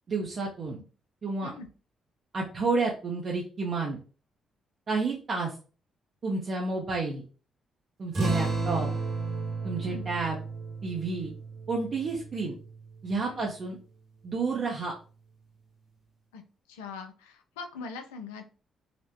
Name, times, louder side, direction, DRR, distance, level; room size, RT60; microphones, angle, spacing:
voice 1, 0.1-0.8 1.2-1.5 2.3-4.0 4.9-5.5 6.2-7.2 8.0-8.9 9.6-10.4 10.8-11.3 11.7-12.6 13.0-13.8 14.2-14.9, right 3 dB, 50° right, -2 dB, 0.7 m, -30 dB
sound 1, 8.1-13.2, right 3 dB, 70° right, 1.6 m, -33 dB
voice 2, 9.7-10.1 13.3-13.5 16.3-16.4 16.7-18.4, left 4 dB, 85° left, 6 dB, 0.4 m, -41 dB
4.1 x 2.1 x 2.8 m, 0.37 s
hypercardioid pair, 45°, 0 cm